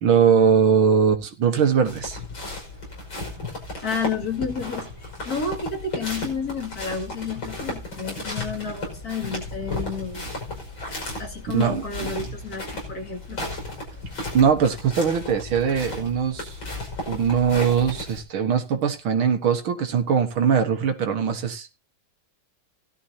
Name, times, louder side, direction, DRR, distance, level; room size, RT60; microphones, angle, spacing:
voice 1, 0.0-2.2 11.5-12.1 14.3-16.6 17.1-21.7, right 7 dB, 90° right, 2.3 m, -21 dB
sound 1, 1.8-18.2, left 2 dB, 70° left, 6.3 m, -34 dB
voice 2, 3.8-10.3 11.2-13.4, left 5 dB, 50° left, 2.9 m, -31 dB
17.5 x 12.5 x 2.8 m
omnidirectional pair, 2.2 m